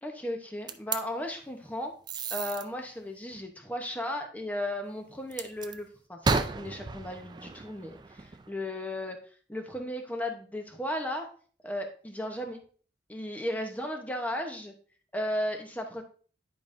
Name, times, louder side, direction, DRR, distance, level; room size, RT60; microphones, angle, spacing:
voice 1, 0.0-1.9 2.3-9.2 9.5-11.3 11.6-12.6 13.1-14.7 15.1-16.0, left 1 dB, 10° left, 4 dB, 0.8 m, -35 dB
sound 1, 0.7-1.0 2.1-2.6 5.3-5.8 6.2-8.5, right 4 dB, 25° right, 0.3 m, -32 dB
10.5 x 5.1 x 2.6 m, 0.43 s
head